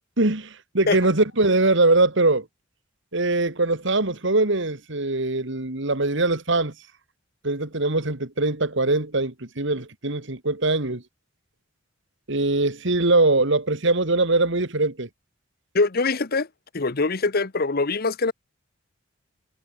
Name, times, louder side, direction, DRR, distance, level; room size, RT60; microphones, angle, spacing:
voice 1, 0.2-2.5 3.1-6.7 7.4-11.0 12.3-15.1, right 2 dB, 65° right, 2.4 m, -22 dB
voice 2, 15.7-16.5 16.7-18.3, left 3 dB, 50° left, 1.0 m, -23 dB
head